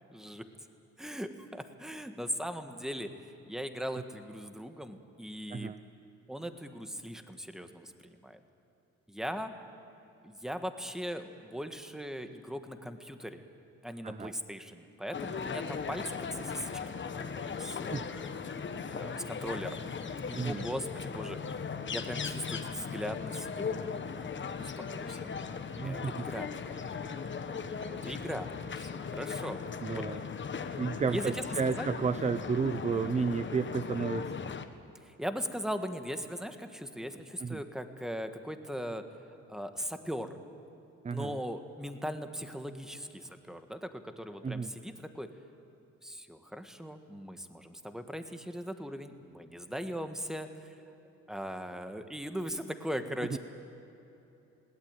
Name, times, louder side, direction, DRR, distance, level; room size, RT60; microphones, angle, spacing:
voice 1, 0.1-0.4 1.0-3.1 3.5-5.7 6.3-8.4 9.1-9.5 10.2-13.4 13.8-16.7 17.2-18.2 18.9-19.8 20.3-21.4 21.9-24.0 24.6-25.3 25.8-26.5 27.8-28.5 28.7-29.6 29.9-30.1 31.1-31.4 31.7-31.9 35.0-39.0 39.5-40.3 41.1-45.3 46.0-50.7 51.3-53.4, equal, ahead, 7 dB, 1.6 m, -39 dB
sound 1, 15.1-34.7, left 5 dB, 40° left, 1.3 m, -38 dB
voice 2, 20.3-20.7 25.8-26.3 29.8-30.2 30.8-34.3 37.4-37.6 41.0-41.4 44.4-44.7 53.3-53.4, right 5 dB, 25° right, 11 dB, 0.6 m, -32 dB
21.5 x 17.0 x 9.0 m, 3.0 s
cardioid pair, 90°, 30 cm